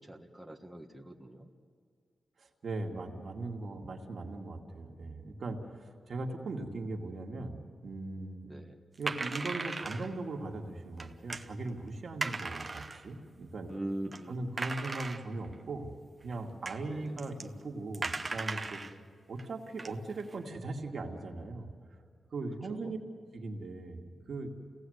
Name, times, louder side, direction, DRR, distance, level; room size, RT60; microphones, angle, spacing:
voice 1, 0.0-1.5 8.4-8.8 13.7-14.6 16.9-17.2 22.7-22.9, right 1 dB, 5° right, 0 dB, 1.6 m, -42 dB
voice 2, 2.4-8.4 9.0-13.7 14.3-15.9 16.2-18.8 19.3-21.7 22.3-23.0 23.3-24.5, right 2 dB, 60° right, 1 dB, 2.2 m, -39 dB
sound 1, 9.0-10.1 11.0-11.5 12.2-13.1 13.7-13.8 14.1-14.2 14.6-15.5 16.3-16.4 16.7-16.8 17.2-17.5 17.9-18.9 19.4-19.5 19.8-20.4, right 3 dB, 30° right, 1.0 m, -37 dB
28.5 x 18.0 x 8.0 m, 2.1 s
wide cardioid pair, 100°, 0 cm